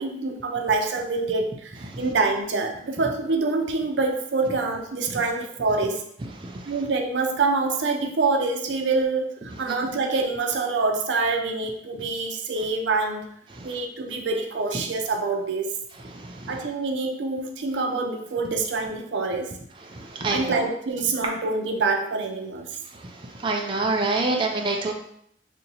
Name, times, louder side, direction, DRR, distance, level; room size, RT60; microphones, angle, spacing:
voice 1, 0.0-6.0 6.7-9.3 9.6-13.2 13.6-15.7 16.5-19.5 20.3-22.7, right 3 dB, 85° right, 3 dB, 0.5 m, -26 dB
voice 2, 19.9-20.6 23.4-24.9, right 3 dB, 25° right, 0 dB, 0.4 m, -26 dB
2.7 x 2.6 x 4.2 m, 0.70 s
head